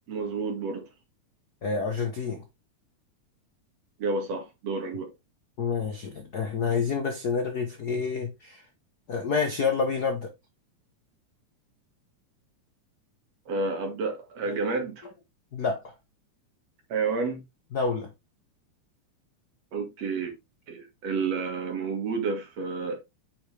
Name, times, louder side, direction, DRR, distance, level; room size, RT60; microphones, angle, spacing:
voice 1, 0.1-0.8 4.0-5.1 13.5-15.1 16.9-17.4 19.7-20.3 20.7-23.0, right 4 dB, 55° right, 3.1 m, -30 dB
voice 2, 1.6-2.4 5.6-8.6 9.1-10.3 14.5-14.6 15.5-15.9 17.7-18.1, left 5 dB, 80° left, 0.8 m, -28 dB
8.9 x 5.0 x 3.4 m
omnidirectional pair, 3.5 m